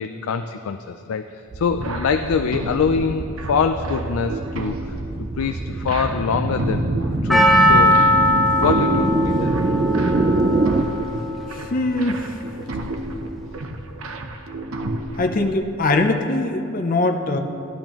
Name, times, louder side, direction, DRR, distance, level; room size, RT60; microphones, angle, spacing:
voice 1, 0.0-4.9 5.4-6.9 7.2-8.0 8.6-9.5, left 6 dB, 85° left, 8 dB, 0.4 m, -24 dB
sound 1, 1.5-10.8, right 3 dB, 30° right, 0.4 m, -25 dB
sound 2, 1.7-15.5, right 1 dB, 85° right, 0.8 m, -31 dB
Percussion, 7.3-11.7 11.9-12.0, left 1 dB, ahead, 1.0 m, -19 dB
voice 2, 11.5-12.3 15.2-17.4, left 2 dB, 40° left, 5 dB, 0.6 m, -22 dB
13.0 x 10.5 x 3.0 m, 2.6 s
head